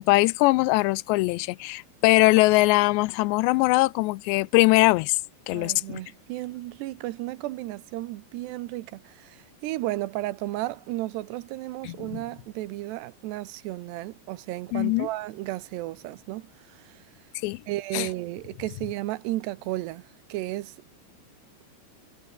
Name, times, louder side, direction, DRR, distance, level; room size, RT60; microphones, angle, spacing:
voice 1, 0.0-5.2 5.5-6.0 11.8-12.2 14.7-15.1 17.4-17.6 17.9-18.1, left 21 dB, 85° left, 2.8 m, -21 dB
voice 2, 5.5-17.0 17.7-20.8, right 17 dB, 75° right, 2.9 m, -34 dB
omnidirectional pair, 5.1 m